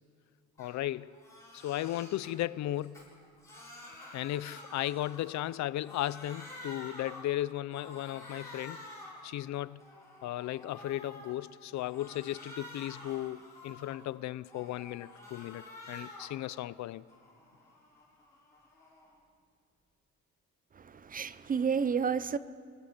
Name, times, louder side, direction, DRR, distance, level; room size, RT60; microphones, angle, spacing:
voice 1, 0.6-1.1 1.5-3.0 4.1-8.8 9.2-9.8 10.2-17.0, left 14 dB, 70° left, 0.6 m, -36 dB
Crying sobbing, 0.6-0.8 1.1-2.3 2.8-5.5 5.8-7.3 7.7-9.2 9.7-11.3 11.7-14.1 14.5-16.4 16.8-19.1, left 2 dB, 10° left, 7.4 m, -49 dB
voice 2, 20.7-22.4, right 6 dB, 30° right, 0.7 m, -31 dB
27.0 x 19.5 x 6.7 m
cardioid pair, 135°, 30 cm